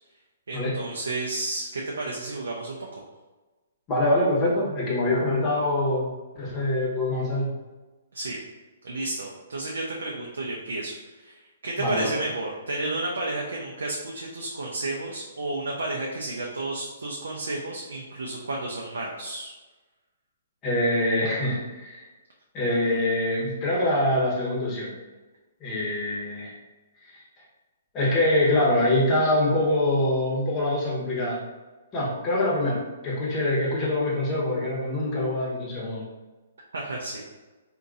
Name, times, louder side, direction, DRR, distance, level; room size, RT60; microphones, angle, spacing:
voice 1, 0.5-3.0 8.1-8.4 8.8-19.5 36.7-37.2, right 2 dB, 80° right, -2 dB, 0.5 m, -32 dB
voice 2, 3.9-7.5 11.8-12.1 20.6-22.1 22.5-24.9 25.6-26.5 27.1-27.2 27.9-31.4 31.9-36.1, left 1 dB, 30° left, -4 dB, 1.1 m, -24 dB
3.7 x 2.6 x 2.6 m, 1.2 s
hypercardioid pair, 135°, 0 cm